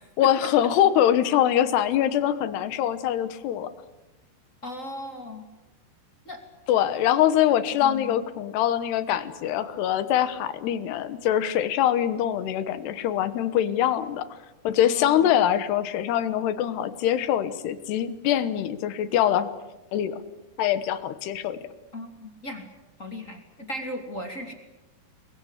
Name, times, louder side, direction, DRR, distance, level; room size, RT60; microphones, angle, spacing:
voice 1, 0.2-3.7 6.7-14.3 14.6-19.5 19.9-20.2 20.6-21.6, left 11 dB, 70° left, 13 dB, 3.0 m, -23 dB
voice 2, 4.6-5.5 6.2-6.4 7.8-8.2 14.8-15.4 21.9-22.6 23.0-24.5, left 1 dB, 25° left, 5 dB, 1.9 m, -37 dB
29.0 x 22.0 x 8.2 m, 1.0 s
omnidirectional pair, 5.6 m